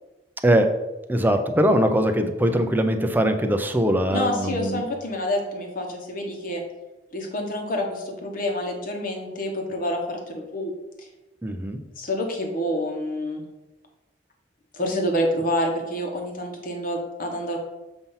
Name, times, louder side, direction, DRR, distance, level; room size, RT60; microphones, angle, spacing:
voice 1, 0.4-0.7 1.1-4.8 11.4-11.8, equal, 10° right, 6 dB, 0.5 m, -21 dB
voice 2, 4.1-6.6 7.1-10.7 11.0-11.1 12.0-13.4 14.7-17.6, left 1 dB, 50° left, 2 dB, 1.2 m, -28 dB
7.0 x 2.8 x 5.6 m, 1.0 s
head